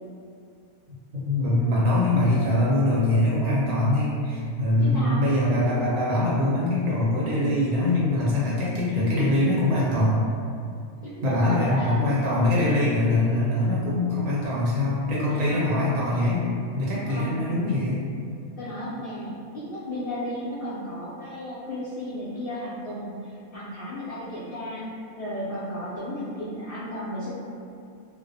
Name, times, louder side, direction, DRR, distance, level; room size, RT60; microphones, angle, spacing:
voice 1, 1.1-10.2 11.2-16.5 16.7-18.0, left 1 dB, 70° right, -6 dB, 1.1 m, -23 dB
voice 2, 4.8-5.2 11.0-12.1 15.3-15.8 17.1-17.5 18.6-24.8 25.2-27.3, equal, 65° left, -10 dB, 0.5 m, -34 dB
2.4 x 2.0 x 2.6 m, 2.4 s
omnidirectional pair, 1.5 m